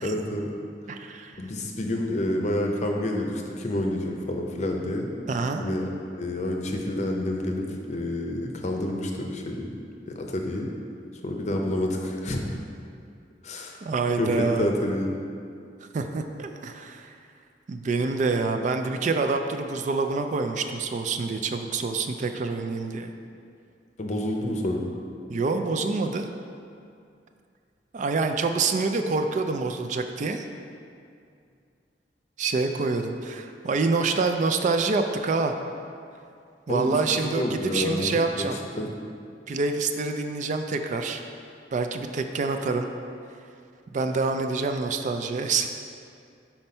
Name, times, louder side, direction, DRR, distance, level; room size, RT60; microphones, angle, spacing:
voice 1, 0.0-0.5 1.4-5.1 5.6-5.8 6.1-9.7 10.1-10.7 11.2-12.4 13.4-13.8 14.2-15.1 24.0-24.9 36.7-36.9 37.4-38.5 38.8-38.9, left 1 dB, 40° left, 2 dB, 0.6 m, -28 dB
voice 2, 0.9-1.3 5.3-5.6 13.8-14.7 15.9-17.1 17.7-23.1 25.3-26.3 27.9-30.5 32.4-35.5 36.7-38.6 39.5-41.2 41.7-42.9 43.9-45.7, right 4 dB, 45° right, 6 dB, 0.3 m, -26 dB
5.8 x 4.4 x 5.3 m, 2.4 s
head